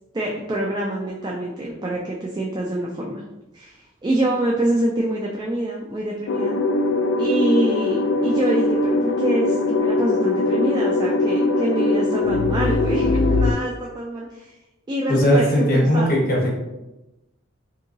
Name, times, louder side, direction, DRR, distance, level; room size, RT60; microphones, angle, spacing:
voice 1, 0.1-3.2 3.5-6.5 7.2-14.5 14.9-16.2, right 1 dB, 20° right, -2 dB, 0.3 m, -26 dB
sound 1, 6.3-13.5, left 2 dB, 70° left, 0.3 m, -21 dB
voice 2, 15.1-16.5, equal, 50° left, -3 dB, 1.0 m, -18 dB
3.8 x 2.7 x 2.6 m, 1.0 s
head